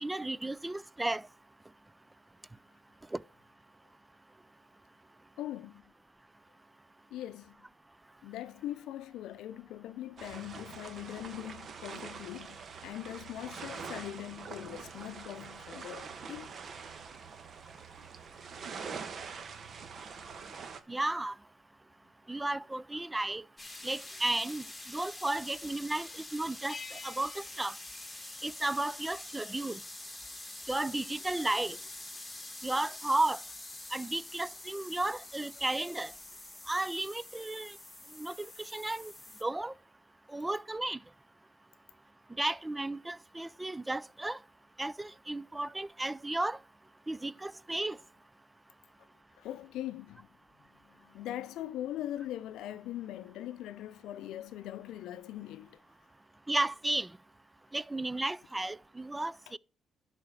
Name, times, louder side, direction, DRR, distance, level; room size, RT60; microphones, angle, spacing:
voice 1, 0.0-1.2 3.1-3.2 20.9-21.3 22.3-23.4 23.8-27.7 28.4-29.8 30.7-31.8 32.6-33.4 33.9-36.1 36.7-37.8 38.2-39.1 39.4-39.7 40.3-41.0 42.4-44.4 44.8-46.6 47.1-48.0 56.5-57.1 57.7-59.6, right 2 dB, 15° right, 0.4 m, -33 dB
voice 2, 5.4-5.8 7.1-7.6 8.2-16.6 49.4-50.3 50.9-55.8, left 13 dB, 85° left, 0.5 m, -41 dB
sound 1, 10.2-20.8, right 5 dB, 50° right, 1.1 m, -45 dB
sound 2, 23.6-39.4, left 2 dB, 10° left, 1.8 m, -46 dB
sound 3, 26.7-28.9, left 5 dB, 30° left, 0.7 m, -50 dB
11.0 x 4.2 x 6.3 m
cardioid pair, 90°, 0 cm